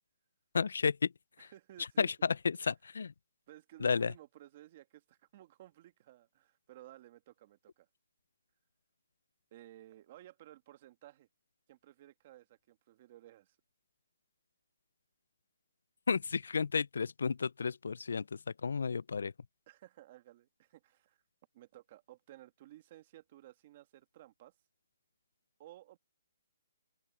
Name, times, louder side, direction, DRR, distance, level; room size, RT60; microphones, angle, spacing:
voice 1, 0.5-1.1 1.4-1.5 2.0-3.1 3.8-4.1 16.1-19.3, left 5 dB, 75° left, 0.3 m, -32 dB
voice 2, 1.4-2.1 3.5-7.9 9.5-11.3 11.7-13.6 19.7-21.2 21.5-24.5 25.6-26.0, right 14 dB, 30° right, 1.6 m, -56 dB
open air
hypercardioid pair, 165°, 0 cm